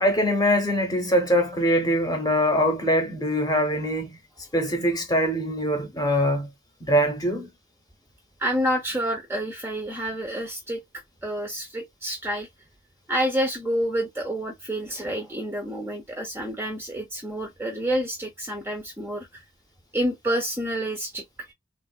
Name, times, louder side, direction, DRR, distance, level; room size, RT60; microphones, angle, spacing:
voice 1, 0.0-4.2 4.5-6.5 6.8-7.5, equal, 20° left, 0.8 m, -23 dB
voice 2, 8.4-10.8 11.2-12.5 13.1-19.4 19.9-21.5, equal, 10° right, 0.5 m, -28 dB
3.5 x 2.3 x 2.3 m
head